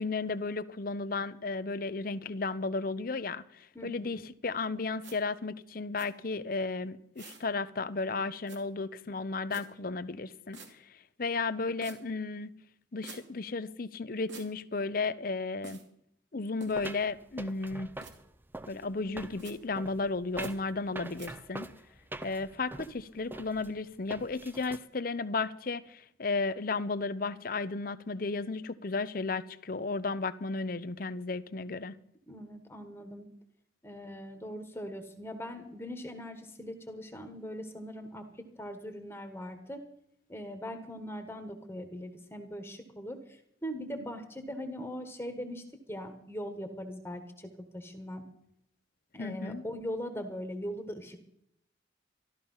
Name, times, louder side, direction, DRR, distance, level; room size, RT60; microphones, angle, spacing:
voice 1, 0.0-12.5 12.9-15.8 16.3-17.9 18.7-21.7 22.2-31.9 49.2-49.6, left 3 dB, 50° left, 0.7 m, -34 dB
voice 2, 3.7-4.2 32.3-33.3 33.8-39.8 40.3-48.2 49.1-51.2, equal, 15° left, 1.4 m, -41 dB
sound 1, 5.0-5.2 6.0-6.1 7.2-7.5 8.5-8.6 9.5-9.6 10.5-10.7 11.8-12.0 13.0-13.2 14.3-14.5 15.6-15.8 16.6-16.9 18.0-18.1 19.4-19.5 20.4-20.5 21.2-21.3, right 4 dB, 75° right, 2.7 m, -47 dB
sound 2, 16.7-24.8, right 2 dB, 10° right, 0.5 m, -44 dB
13.5 x 13.0 x 5.6 m
head